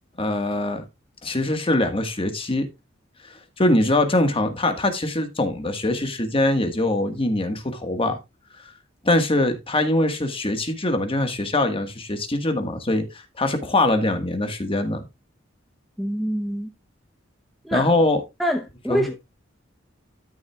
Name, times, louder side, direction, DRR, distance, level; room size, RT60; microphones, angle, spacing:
voice 1, 0.2-0.8 1.2-2.7 3.3-8.2 9.0-15.1 17.7-18.2 18.9-19.0, left 1 dB, 30° left, 1.6 m, -23 dB
voice 2, 16.0-16.7 17.6-17.9 18.4-19.1, equal, ahead, 0.9 m, -25 dB
12.5 x 7.3 x 2.4 m
head